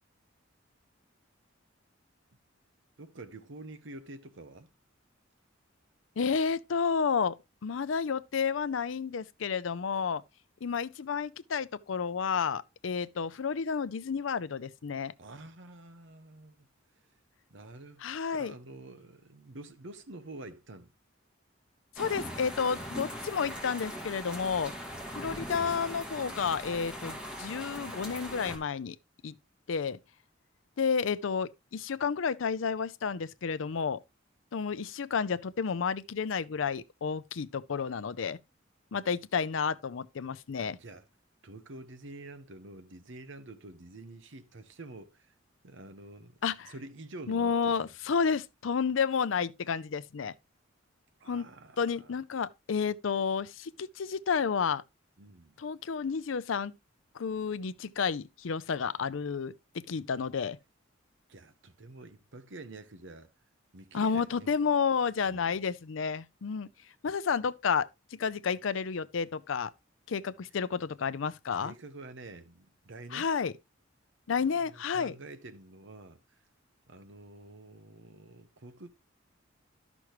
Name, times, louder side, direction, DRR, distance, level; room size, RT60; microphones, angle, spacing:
voice 1, 3.0-4.7 15.0-16.6 17.5-18.0 18.3-20.9 25.1-25.4 40.6-41.0 41.4-45.3 45.6-46.4 46.7-47.9 51.2-52.2 55.2-55.6 61.3-63.3 63.7-64.5 65.3-65.6 71.5-73.3 74.4-76.2 76.9-78.9, right 2 dB, 65° right, 1.0 m, -48 dB
voice 2, 6.2-7.4 7.6-10.2 10.6-15.1 18.0-18.5 22.0-24.7 25.1-29.0 29.2-29.3 29.7-30.0 30.8-34.0 34.5-38.4 38.9-40.8 46.4-46.7 47.3-50.3 51.3-51.5 51.8-54.8 55.6-56.7 57.1-60.6 63.9-66.7 67.0-69.7 70.1-71.7 73.1-73.5 74.3-75.2, left 6 dB, 70° left, 0.5 m, -31 dB
sound 1, 22.0-28.6, equal, 5° right, 1.8 m, -40 dB
12.0 x 6.1 x 3.0 m
head